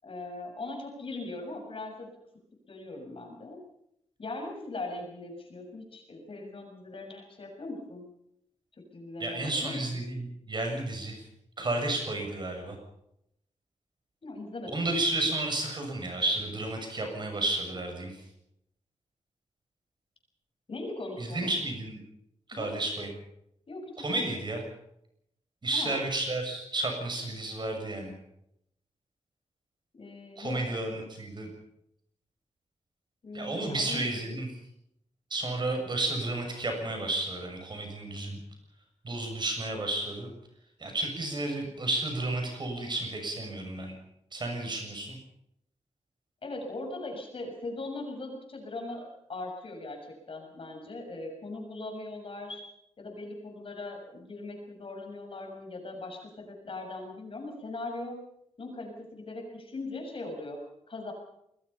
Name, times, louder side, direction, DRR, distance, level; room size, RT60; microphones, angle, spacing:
voice 1, 0.0-2.1 2.7-3.6 4.2-8.0 8.8-10.0 14.2-15.0 20.7-21.5 22.5-22.8 23.7-24.4 25.7-26.1 30.0-30.6 30.9-31.1 33.2-34.4 46.4-52.6 53.0-58.2 58.6-61.1, left 2 dB, 50° left, 2 dB, 6.8 m, -40 dB
voice 2, 9.2-11.2 11.6-12.8 14.7-18.2 21.2-22.0 22.5-23.1 24.0-24.6 25.6-28.1 30.4-31.5 33.3-34.5 35.3-38.4 39.0-40.3 40.8-43.9 44.3-45.2, right 2 dB, 40° right, 3 dB, 7.1 m, -32 dB
28.0 x 20.5 x 5.7 m, 0.77 s
wide cardioid pair, 175°, 12 cm